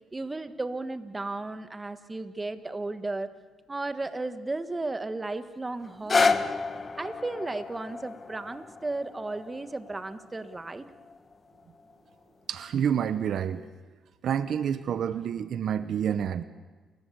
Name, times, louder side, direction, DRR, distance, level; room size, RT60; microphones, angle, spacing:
voice 1, 0.1-3.3 3.7-6.4 7.0-10.9, right 2 dB, 20° right, 10 dB, 1.5 m, -34 dB
sound 1, 5.8-11.9 12.6-12.7, left 4 dB, 35° left, 1.3 m, -31 dB
voice 2, 12.5-13.6 14.2-16.4, right 8 dB, 65° right, 12 dB, 0.8 m, -28 dB
29.5 x 14.5 x 8.4 m, 1.3 s
cardioid pair, 90°, 0 cm